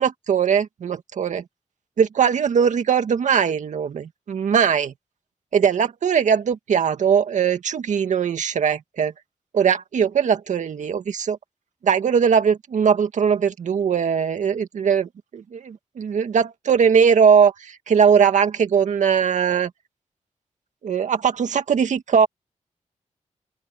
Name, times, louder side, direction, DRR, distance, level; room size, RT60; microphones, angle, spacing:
voice 1, 0.0-1.4 2.0-4.9 5.5-9.1 9.5-11.4 11.8-19.7 20.8-22.3, right 7 dB, 85° right, 2.0 m, -20 dB
open air
wide cardioid pair, 170°, 12 cm